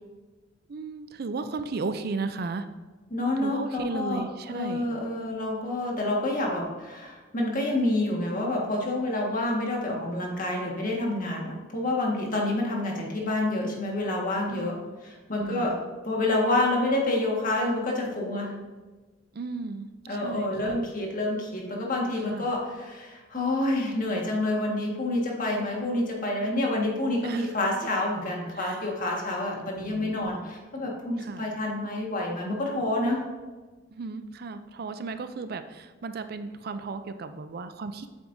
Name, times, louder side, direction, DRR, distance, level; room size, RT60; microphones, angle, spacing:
voice 1, 0.7-2.7 3.4-4.9 14.5-14.8 15.4-15.7 19.3-20.8 22.3-22.5 27.2-27.5 28.6-28.8 29.7-30.5 31.2-31.5 33.9-38.1, right 4 dB, 55° right, 10 dB, 0.4 m, -35 dB
voice 2, 3.1-4.2 4.5-14.8 15.0-15.7 16.1-18.6 20.1-33.2, left 1 dB, 45° left, -1 dB, 1.6 m, -28 dB
8.4 x 7.9 x 2.7 m, 1.3 s
head